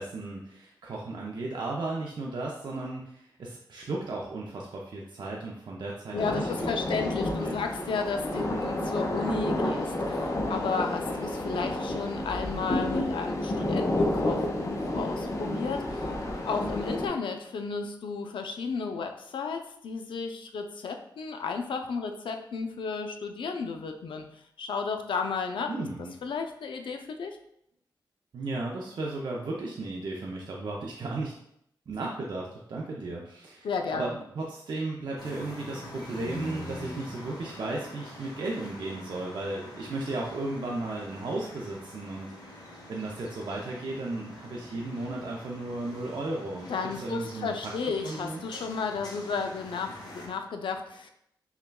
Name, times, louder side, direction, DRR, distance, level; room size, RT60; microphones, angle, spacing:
voice 1, 0.0-7.7 25.7-26.1 28.3-31.3 31.9-47.7 48.0-48.4, right 2 dB, 65° right, -2 dB, 0.5 m, -35 dB
voice 2, 6.1-16.2 16.4-25.7 26.2-27.4 33.6-34.2 46.7-51.1, left 5 dB, 80° left, 5 dB, 0.4 m, -33 dB
sound 1, 6.2-17.1, left 1 dB, 35° left, 0.6 m, -30 dB
sound 2, 35.2-50.3, left 1 dB, 55° left, 1.0 m, -45 dB
5.6 x 2.2 x 2.2 m, 0.74 s
cardioid pair, 75°, 8 cm